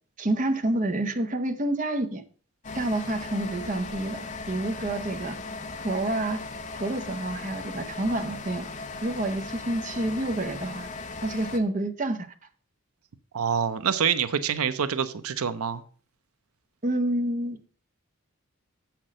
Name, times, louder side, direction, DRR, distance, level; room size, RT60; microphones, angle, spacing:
voice 1, 0.2-2.2 2.7-5.4 5.8-6.4 6.7-8.7 9.0-10.9 11.2-12.3 16.8-17.7, right 1 dB, 35° right, 0.8 m, -28 dB
sound 1, 2.6-11.6, left 3 dB, 35° left, 0.8 m, -38 dB
voice 2, 13.3-15.8, right 7 dB, 80° right, 0.6 m, -26 dB
7.8 x 5.9 x 6.2 m
head